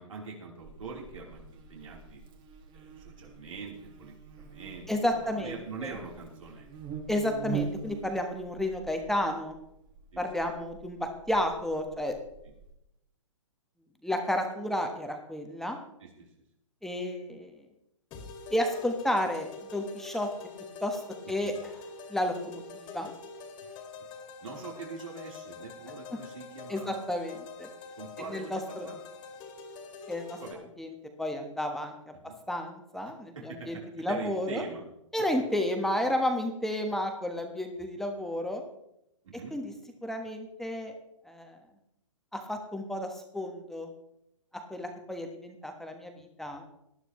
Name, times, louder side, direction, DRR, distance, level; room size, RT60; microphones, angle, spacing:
voice 1, 0.0-1.4 1.7-2.2 2.7-6.7 10.1-10.2 12.4-12.5 16.2-16.3 21.2-21.3 23.6-23.7 24.4-27.0 27.9-29.0 29.3-29.4 30.4-30.6 32.2-32.4 33.4-33.7 34.1-34.8 35.2-35.3 39.2-39.5 44.7-44.9, right 4 dB, 75° right, -2 dB, 3.8 m, -43 dB
Buzz, 0.6-12.7, right 6 dB, 25° right, 1.8 m, -44 dB
voice 2, 4.9-5.9 7.1-9.6 10.2-12.1 14.0-15.8 16.8-17.5 18.5-20.3 20.8-21.0 21.3-21.5 22.1-23.1 26.7-27.7 28.3-28.9 30.1-30.4 30.8-30.9 31.2-31.9 32.5-34.6 35.1-38.6 39.5-39.7 40.0-40.9 41.3-41.6 42.3-43.9 44.5-46.6, left 1 dB, ahead, 4 dB, 1.2 m, -32 dB
sound 1, 18.1-30.5, left 5 dB, 25° left, 2.2 m, -45 dB
19.0 x 12.0 x 3.2 m, 0.83 s
hypercardioid pair, 130°, 17 cm